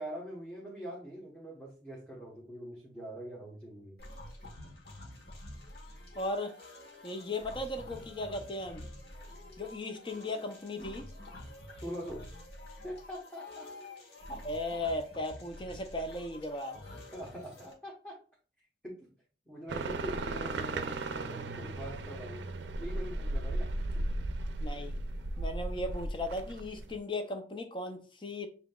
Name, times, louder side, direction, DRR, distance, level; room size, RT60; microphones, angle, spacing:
voice 1, 0.0-4.0 11.7-12.3 12.8-13.7 16.9-18.2 18.8-19.1 19.5-22.5 22.8-23.7, equal, 5° left, 1.1 m, -43 dB
sound 1, 4.0-17.7, left 1 dB, 60° left, 1.2 m, -48 dB
voice 2, 6.2-6.6 7.0-8.8 9.6-11.1 14.3-16.8 24.6-25.0 25.4-28.5, left 1 dB, 25° left, 0.5 m, -37 dB
sound 2, 19.7-27.0, right 2 dB, 80° right, 0.5 m, -36 dB
7.1 x 2.8 x 2.3 m
head